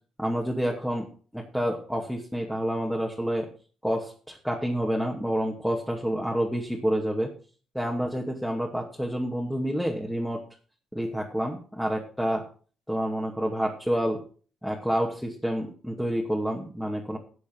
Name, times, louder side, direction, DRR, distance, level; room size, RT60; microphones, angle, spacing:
voice 1, 0.2-1.1 1.3-3.5 3.8-7.3 7.7-10.4 10.9-12.4 12.9-14.2 14.6-17.2, equal, ahead, 0 dB, 2.4 m, -28 dB
13.5 x 8.2 x 4.7 m, 0.41 s
cardioid pair, 90°, 0 cm